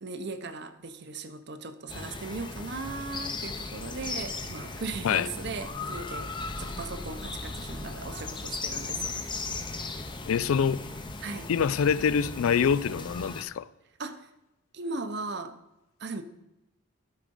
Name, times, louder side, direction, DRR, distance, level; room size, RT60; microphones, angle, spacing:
voice 1, 0.0-6.3 6.6-9.2 11.2-11.5 14.0-14.3 14.7-15.6 16.0-16.2, right 3 dB, 55° right, 0.7 m, -38 dB
sound 1, 1.9-13.4, left 3 dB, 20° left, 0.7 m, -37 dB
voice 2, 10.3-10.8 11.5-13.7, left 7 dB, 85° left, 0.4 m, -25 dB
12.5 x 4.9 x 5.3 m
head